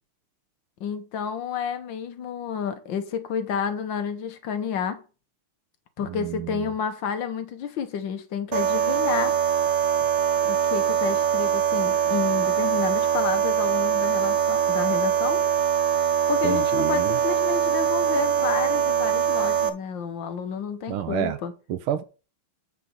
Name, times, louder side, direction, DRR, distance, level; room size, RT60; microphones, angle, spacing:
voice 1, 0.8-5.0 6.0-9.4 10.4-15.4 16.3-21.5, left 7 dB, 65° left, 1.6 m, -30 dB
voice 2, 6.0-6.7 16.4-17.2 20.9-21.4 21.7-22.0, right 10 dB, 80° right, 1.5 m, -29 dB
sound 1, 8.5-19.7, right 9 dB, 60° right, 1.2 m, -23 dB
9.0 x 4.5 x 5.4 m
omnidirectional pair, 2.4 m